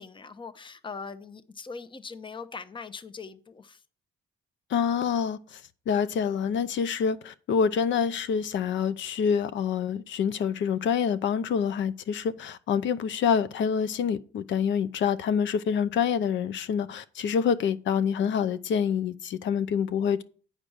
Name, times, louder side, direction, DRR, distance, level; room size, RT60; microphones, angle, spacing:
voice 1, 0.0-3.8, left 5 dB, 25° left, 0.7 m, -41 dB
voice 2, 4.7-5.6 5.9-20.2, left 7 dB, 70° left, 0.7 m, -26 dB
8.8 x 5.1 x 6.3 m
cardioid pair, 90°, 20 cm